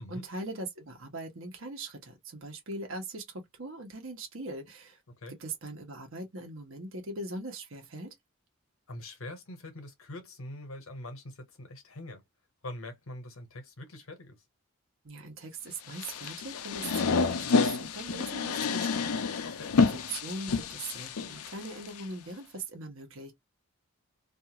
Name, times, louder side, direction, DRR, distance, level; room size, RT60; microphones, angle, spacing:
voice 1, 0.0-5.0 5.4-8.1 15.0-19.5 19.8-23.3, right 2 dB, 65° right, 1.0 m, -41 dB
voice 2, 8.9-12.2 12.6-14.4 19.4-19.8, left 1 dB, 70° left, 1.0 m, -43 dB
sound 1, 15.9-22.0, left 4 dB, 90° left, 0.5 m, -29 dB
2.6 x 2.4 x 2.8 m
head